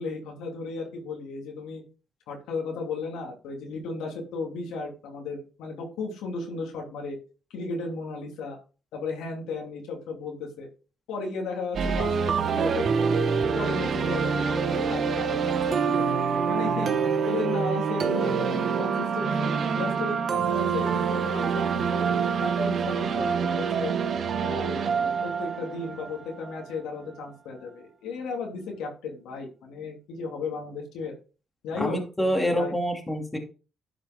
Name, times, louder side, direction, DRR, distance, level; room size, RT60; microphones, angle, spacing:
voice 1, 0.0-1.8 2.3-7.2 7.5-8.6 8.9-10.7 11.1-13.1 13.5-16.0 16.5-16.9 17.2-22.0 22.4-23.9 24.4-31.1 31.6-32.7, left 3 dB, 90° left, 1 dB, 2.6 m, -35 dB
sound 1, 11.7-26.6, right 6 dB, 55° right, 1.0 m, -26 dB
voice 2, 31.8-33.4, equal, 10° left, 1 dB, 2.5 m, -27 dB
11.5 x 5.1 x 3.6 m, 0.35 s
cardioid pair, 90°, 0 cm